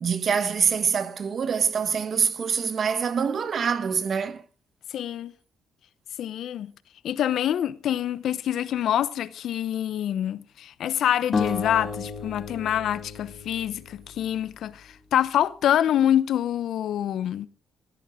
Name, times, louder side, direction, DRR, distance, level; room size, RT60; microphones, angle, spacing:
voice 1, 0.0-4.4, right 6 dB, 50° right, 1.4 m, -25 dB
voice 2, 4.9-5.3 6.2-6.7 7.0-17.5, left 10 dB, 70° left, 0.8 m, -26 dB
sound 1, 11.3-14.5, left 5 dB, 40° left, 2.2 m, -32 dB
16.5 x 13.5 x 3.7 m
cardioid pair, 90°, 0 cm